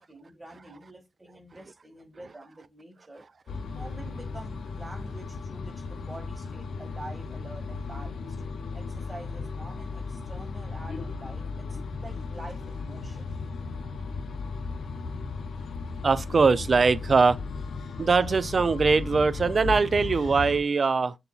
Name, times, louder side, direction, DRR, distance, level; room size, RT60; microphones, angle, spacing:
voice 1, 0.0-3.2 3.7-8.4 8.7-13.3, right 1 dB, 20° right, 1.7 m, -46 dB
sound 1, 3.5-20.6, left 4 dB, 75° left, 0.6 m, -36 dB
voice 2, 16.0-17.4 18.0-21.1, right 4 dB, 50° right, 0.4 m, -22 dB
6.8 x 2.8 x 2.3 m
cardioid pair, 50°, 0 cm